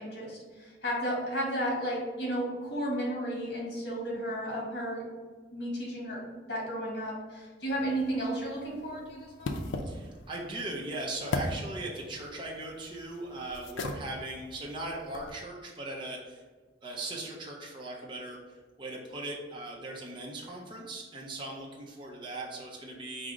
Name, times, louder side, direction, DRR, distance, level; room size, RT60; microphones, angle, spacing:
voice 1, 0.0-5.0 5.5-9.5, equal, 60° left, -3 dB, 1.2 m, -33 dB
sound 1, 7.7-15.4, left 2 dB, 85° left, 0.4 m, -39 dB
voice 2, 9.8-16.4 16.8-23.3, right 2 dB, 25° right, -2 dB, 0.5 m, -39 dB
4.6 x 2.0 x 3.7 m, 1.4 s
head